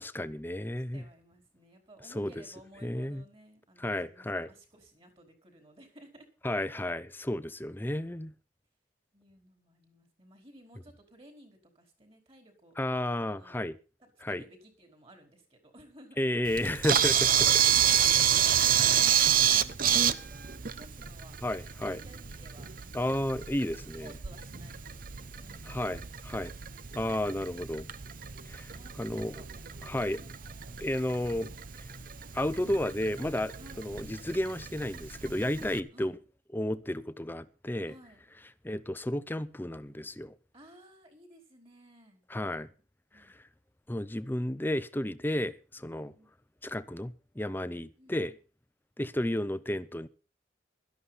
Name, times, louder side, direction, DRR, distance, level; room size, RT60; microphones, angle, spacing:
voice 1, 0.0-1.0 2.1-2.3 2.8-3.2 3.8-4.5 6.4-8.3 12.8-13.8 14.2-14.4 16.2-17.6 21.4-22.0 22.9-24.1 25.6-26.5 26.9-27.9 28.5-28.7 29.0-29.3 29.8-30.2 30.8-31.5 32.3-36.1 36.5-37.9 38.6-40.3 42.3-42.7 43.2-43.4 43.9-46.1 46.6-48.3 49.0-50.1, left 1 dB, 10° left, 0.7 m, -32 dB
voice 2, 0.9-6.3 9.1-12.8 13.3-13.6 14.0-16.2 18.8-21.4 21.8-23.3 24.0-26.2 28.7-29.5 29.9-30.3 33.6-33.9 35.6-36.1 37.8-38.2 40.5-42.7 43.1-43.4 45.9-46.3 47.7-48.2, right 1 dB, 30° right, 4.5 m, -56 dB
Camera, 16.5-35.8, right 9 dB, 50° right, 0.8 m, -29 dB
17.0 x 13.0 x 4.2 m
head